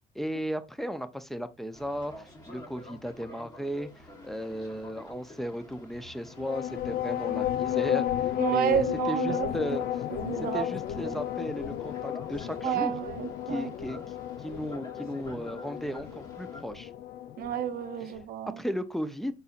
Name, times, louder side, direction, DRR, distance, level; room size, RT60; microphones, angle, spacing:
voice 1, 0.1-8.1 8.5-9.8 10.5-12.9 13.5-14.0 14.4-16.9 18.6-19.3, equal, ahead, 0.4 m, -35 dB
Boat Water vehicle, 1.7-16.6, left 1 dB, 25° left, 1.3 m, -49 dB
sound 1, 6.3-18.2, left 12 dB, 65° left, 0.5 m, -33 dB
voice 2, 8.4-9.5 10.1-10.7 11.0-11.1 12.6-13.7 17.4-18.6, right 10 dB, 60° right, 0.5 m, -30 dB
4.1 x 4.0 x 2.4 m
cardioid pair, 110°, 17 cm